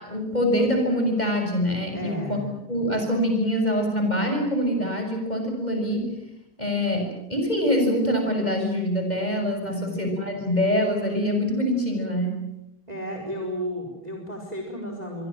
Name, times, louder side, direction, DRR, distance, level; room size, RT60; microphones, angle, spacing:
voice 1, 0.0-2.4 2.7-6.1 6.6-12.4, equal, 15° left, 3 dB, 6.6 m, -24 dB
voice 2, 1.9-2.5 9.7-10.0 12.9-15.3, equal, 10° right, 2 dB, 4.6 m, -33 dB
26.5 x 23.5 x 7.6 m, 0.86 s
omnidirectional pair, 3.3 m